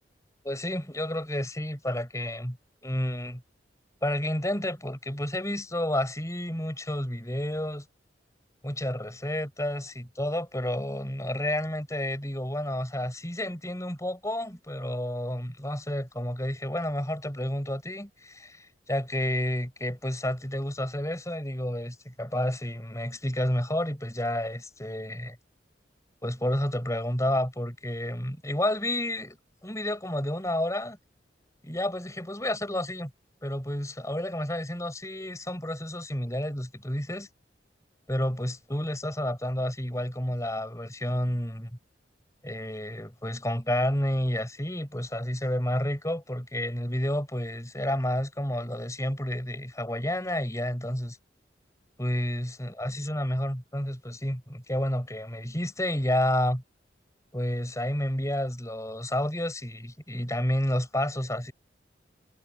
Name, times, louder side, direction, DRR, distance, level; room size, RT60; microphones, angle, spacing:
voice 1, 0.4-2.6 2.8-3.4 4.0-7.9 8.6-25.4 26.2-29.4 29.6-31.0 31.6-33.1 33.4-37.3 38.1-41.7 42.4-51.2 52.0-56.6 57.3-61.5, left 1 dB, 15° left, 7.1 m, -30 dB
head